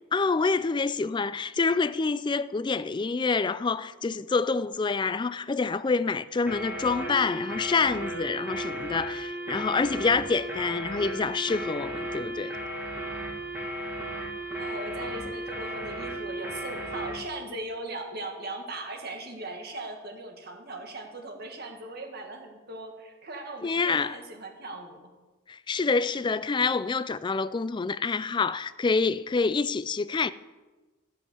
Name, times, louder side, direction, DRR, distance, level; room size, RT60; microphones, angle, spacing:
voice 1, 0.1-12.5 23.6-24.2 25.5-30.3, left 4 dB, 20° left, 0.3 m, -27 dB
sound 1, 6.5-17.2, right 1 dB, 10° right, 2.0 m, -35 dB
voice 2, 14.6-25.1, right 2 dB, 50° right, 1.8 m, -39 dB
14.0 x 5.7 x 7.7 m
head